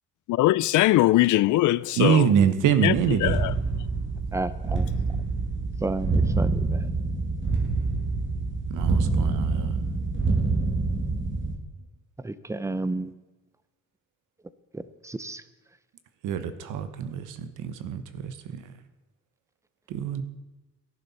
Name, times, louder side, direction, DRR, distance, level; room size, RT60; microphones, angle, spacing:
voice 1, 0.3-2.3 2.8-2.9 3.2-3.5, left 16 dB, 75° left, 0.5 m, -21 dB
voice 2, 2.0-3.4 8.7-9.8 16.2-18.6 19.9-20.2, right 8 dB, 90° right, 1.1 m, -25 dB
sound 1, 2.9-11.5, right 3 dB, 40° right, 2.2 m, -26 dB
voice 3, 4.3-4.9 5.8-6.8 12.2-13.1 14.7-15.4, right 2 dB, 10° right, 0.7 m, -31 dB
17.5 x 11.0 x 4.2 m
cardioid pair, 90°, 30 cm